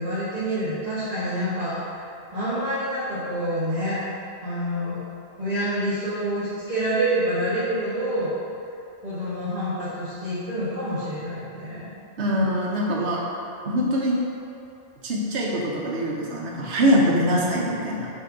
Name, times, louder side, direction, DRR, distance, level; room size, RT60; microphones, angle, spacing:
voice 1, 0.0-2.0 2.3-4.0 4.4-5.0 5.4-8.3 9.0-11.9 17.0-17.2, right 1 dB, 35° right, -13 dB, 1.5 m, -27 dB
voice 2, 12.2-13.2 13.6-14.2 15.0-18.1, equal, 60° right, -4 dB, 1.1 m, -23 dB
8.2 x 3.5 x 3.8 m, 2.7 s
omnidirectional pair, 1.3 m